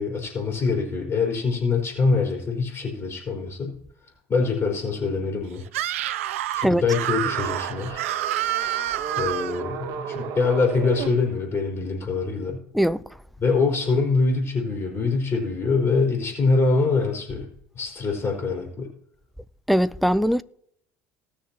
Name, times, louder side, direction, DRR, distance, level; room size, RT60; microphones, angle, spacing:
voice 1, 0.0-3.7 4.3-5.6 6.5-8.1 9.1-12.6 13.4-17.5 17.7-18.9, left 4 dB, 30° left, 4.4 m, -24 dB
Screaming, 5.7-9.6, right 12 dB, 80° right, 0.5 m, -28 dB
sound 1, 7.2-11.1, right 7 dB, 60° right, 1.3 m, -34 dB
voice 2, 19.7-20.4, equal, ahead, 0.6 m, -20 dB
19.5 x 6.6 x 3.0 m
hypercardioid pair, 70°, 7 cm